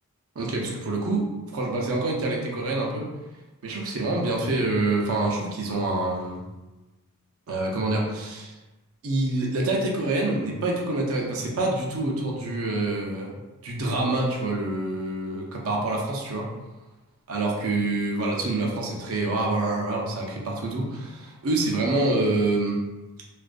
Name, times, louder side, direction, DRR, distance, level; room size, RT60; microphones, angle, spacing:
voice 1, 0.4-3.1 3.6-6.4 7.5-8.5 9.0-13.3 13.6-16.5 17.3-22.8, right 2 dB, 65° right, -1 dB, 0.5 m, -26 dB
2.4 x 2.1 x 2.4 m, 1.1 s
head